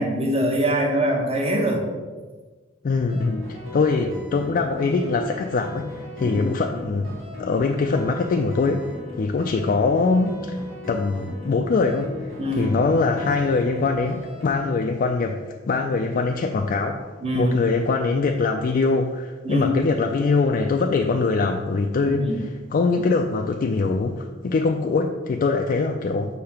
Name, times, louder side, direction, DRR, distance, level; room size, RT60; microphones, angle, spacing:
voice 1, 0.0-1.8 6.2-6.4 12.4-12.7 17.2-17.6 19.4-19.8 22.2-22.4, equal, 30° right, 1 dB, 0.9 m, -23 dB
voice 2, 2.8-3.4 3.7-5.9 6.2-10.6 10.9-26.4, left 4 dB, 45° left, 3 dB, 0.3 m, -23 dB
sound 1, 3.1-14.7, left 2 dB, 75° right, 1.9 m, -38 dB
6.5 x 2.8 x 5.7 m, 1.4 s
head